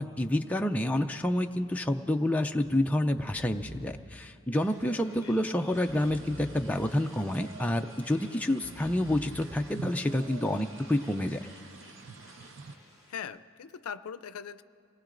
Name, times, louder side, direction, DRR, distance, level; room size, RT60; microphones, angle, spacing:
voice 1, 0.0-11.4, left 1 dB, 5° left, 4 dB, 0.3 m, -28 dB
Breathing, 3.1-4.0 4.6-5.3 5.7-6.7 7.3-8.0 8.5-9.5 10.1-10.7, equal, 35° right, 1.8 m, -47 dB
sound 1, 4.6-13.3, left 1 dB, 20° right, 2.7 m, -55 dB
sound 2, 5.7-12.8, right 4 dB, 55° right, 0.5 m, -49 dB
voice 2, 13.1-14.6, left 7 dB, 80° left, 14 dB, 0.4 m, -40 dB
28.0 x 19.5 x 2.5 m, 2.4 s
head